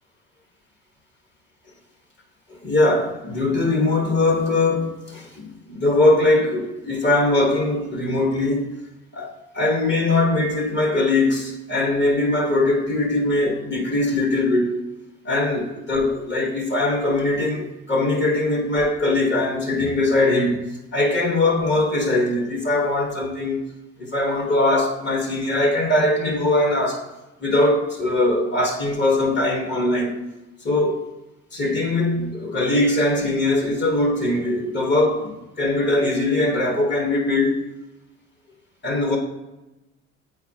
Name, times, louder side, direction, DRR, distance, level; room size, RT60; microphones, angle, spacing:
voice 1, 2.5-8.7 9.1-14.8 15.2-20.6 20.9-23.6 24.0-27.0 27.4-30.2 30.6-31.0 31.5-37.6 38.8-39.2, left 2 dB, 35° left, 1.5 m, -21 dB
8.4 x 4.0 x 2.9 m
cardioid pair, 105°, 31 cm